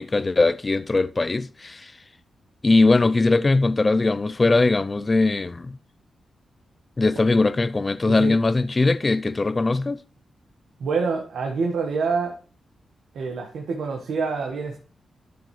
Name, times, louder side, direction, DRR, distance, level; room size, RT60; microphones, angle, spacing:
voice 1, 0.0-1.9 2.6-5.8 7.0-10.0, left 3 dB, 25° left, 0.4 m, -20 dB
voice 2, 10.8-12.4 13.1-14.8, right 4 dB, 80° right, 1.4 m, -26 dB
11.5 x 6.9 x 3.2 m
wide cardioid pair, 120°, 0 cm